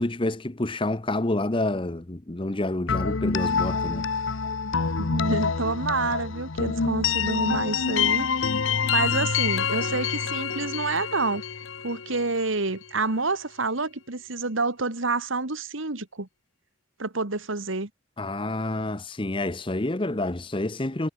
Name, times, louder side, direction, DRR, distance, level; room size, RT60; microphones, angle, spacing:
voice 1, 0.0-4.1 18.2-21.1, left 2 dB, 25° left, 0.8 m, -28 dB
sound 1, 2.9-12.6, left 6 dB, 70° left, 0.9 m, -27 dB
voice 2, 5.0-8.3 8.9-11.4 11.8-16.3 17.0-17.9, right 3 dB, 70° right, 1.9 m, -28 dB
head